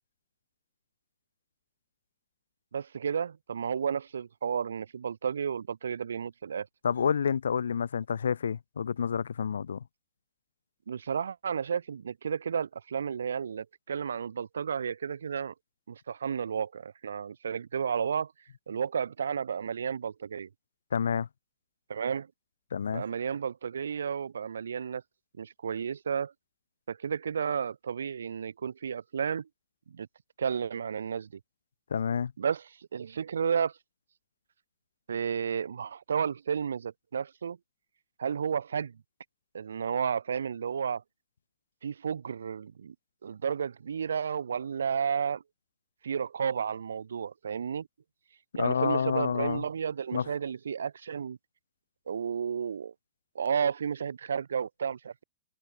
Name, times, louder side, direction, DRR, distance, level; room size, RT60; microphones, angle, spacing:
voice 1, 2.7-6.7 10.9-15.5 15.9-18.3 18.7-20.5 21.9-22.3 22.9-25.0 25.4-26.3 26.9-29.5 29.9-30.1 30.4-31.3 32.4-33.7 35.1-37.6 38.2-39.0 39.5-41.0 41.8-42.9 43.2-45.4 46.0-47.9 48.6-51.4 52.1-52.9 53.3-55.2, right 7 dB, 70° right, 2.4 m, -32 dB
voice 2, 6.8-9.8 20.9-21.3 22.7-23.0 31.9-32.3 48.6-49.6 50.1-50.3, left 7 dB, 70° left, 1.7 m, -29 dB
figure-of-eight pair, 100°, 0 cm